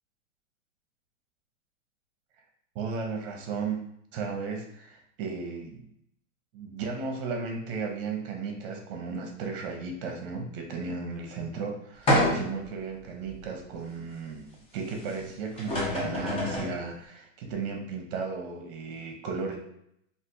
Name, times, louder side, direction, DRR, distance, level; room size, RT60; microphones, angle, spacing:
voice 1, 2.7-3.9 4.1-5.9 6.5-19.6, right 4 dB, 45° right, 2 dB, 0.8 m, -35 dB
sound 1, 12.1-12.7 13.3-13.4 15.2-15.3 15.6-16.8, left 1 dB, 15° left, 0.6 m, -26 dB
3.4 x 2.5 x 2.5 m, 0.73 s
hypercardioid pair, 130°, 39 cm